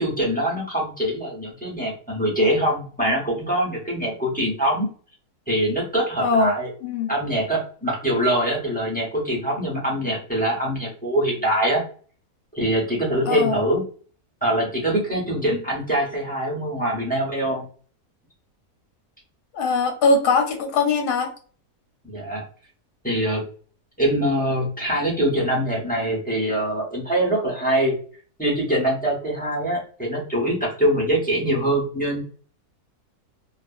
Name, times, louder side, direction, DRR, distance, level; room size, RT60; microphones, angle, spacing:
voice 1, 0.0-4.9 5.5-6.7 7.1-11.8 12.5-13.8 14.4-17.6 22.0-22.4 23.0-23.4 24.0-27.9 28.4-32.2, right 1 dB, 10° left, -4 dB, 0.6 m, -23 dB
voice 2, 6.2-6.5 6.8-7.1 13.3-13.6 19.5-21.3, left 3 dB, 85° left, 4 dB, 1.2 m, -21 dB
2.7 x 2.4 x 2.4 m, 0.42 s
omnidirectional pair, 1.7 m